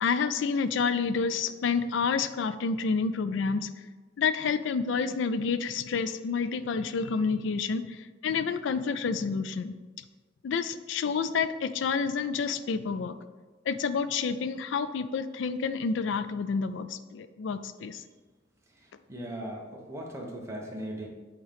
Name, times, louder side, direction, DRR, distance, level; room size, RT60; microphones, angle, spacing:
voice 1, 0.0-3.7 4.2-9.7 10.4-13.2 13.7-18.0, left 5 dB, 75° left, 12 dB, 0.4 m, -29 dB
voice 2, 19.1-21.1, right 1 dB, 15° right, -2 dB, 0.9 m, -38 dB
7.9 x 3.7 x 3.4 m, 1.3 s
head